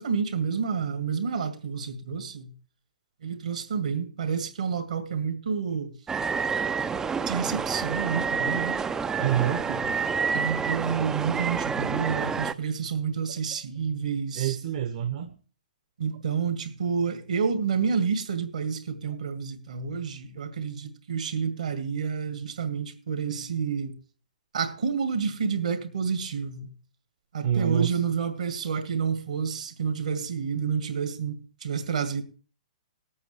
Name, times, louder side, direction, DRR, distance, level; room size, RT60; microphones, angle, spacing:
voice 1, 0.0-2.5 3.2-5.9 7.3-8.8 9.7-9.9 10.3-14.6 16.0-24.0 24.5-26.7 27.3-32.2, right 6 dB, 70° right, 2.0 m, -29 dB
sound 1, 6.1-12.5, right 5 dB, 15° right, 0.5 m, -28 dB
voice 2, 9.2-9.7 14.3-15.3 27.4-28.0, right 10 dB, 55° right, 1.1 m, -26 dB
19.5 x 8.6 x 3.3 m
figure-of-eight pair, 115°, 4 cm